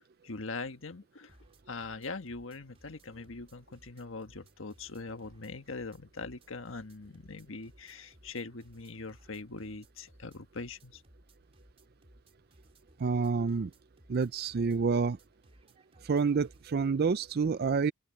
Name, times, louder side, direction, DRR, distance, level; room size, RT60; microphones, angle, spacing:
voice 1, 0.2-1.4 1.7-11.0, left 3 dB, 75° left, 1.4 m, -42 dB
sound 1, 1.3-16.9, right 1 dB, 30° right, 4.2 m, -62 dB
voice 2, 13.0-13.7 14.1-15.2 16.0-17.9, right 5 dB, 50° right, 0.4 m, -28 dB
open air
head